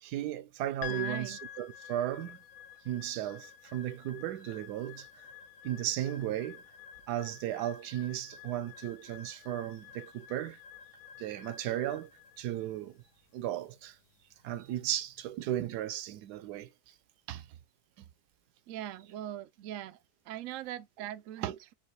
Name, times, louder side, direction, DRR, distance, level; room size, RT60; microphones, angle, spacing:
voice 1, 0.0-2.4 2.8-5.2 5.6-6.6 7.1-10.6 11.2-12.1 12.4-13.0 13.3-14.0 14.4-16.7 17.3-17.5 21.4-21.5, right 12 dB, 85° right, 1.1 m, -35 dB
sound 1, 0.8-15.2, left 9 dB, 65° left, 1.0 m, -49 dB
voice 2, 0.9-1.4 18.7-20.0 20.3-21.7, right 12 dB, 70° right, 0.8 m, -41 dB
5.4 x 2.3 x 3.1 m
omnidirectional pair, 1.7 m